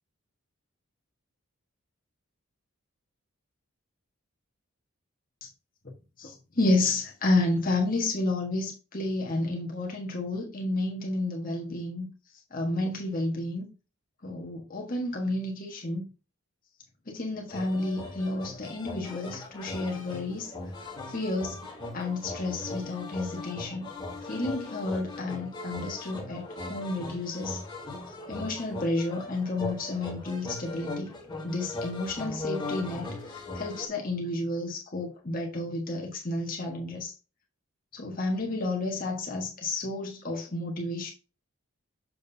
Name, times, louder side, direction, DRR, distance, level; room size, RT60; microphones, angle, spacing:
voice 1, 6.2-12.1 12.5-13.7 14.2-16.0 17.1-20.5 21.1-21.6 21.9-23.9 24.2-27.6 28.3-31.1 31.4-37.1 37.9-41.1, left 2 dB, 40° left, 1.4 m, -31 dB
sound 1, 17.5-33.9, left 2 dB, 20° left, 2.0 m, -39 dB
7.2 x 6.3 x 2.8 m
head